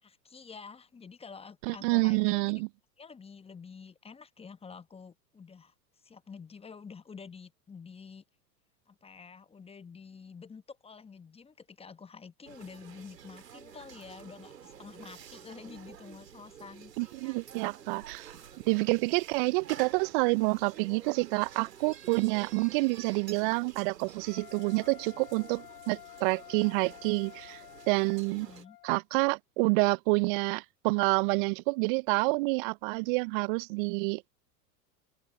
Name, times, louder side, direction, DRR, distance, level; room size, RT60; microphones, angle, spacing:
voice 1, 0.0-2.5 3.0-8.2 8.9-16.9 22.3-22.6 28.2-28.8, left 5 dB, 10° left, 1.1 m, -49 dB
voice 2, 1.7-2.7 17.0-18.3 18.7-27.6 27.9-28.5 28.8-34.3, right 30 dB, 35° right, 0.5 m, -28 dB
sound 1, 12.5-28.7, right 8 dB, 75° right, 3.9 m, -50 dB
Wind instrument woodwind instrument, 24.2-29.0, left 15 dB, 65° left, 1.7 m, -51 dB
figure-of-eight pair, 95°, 49 cm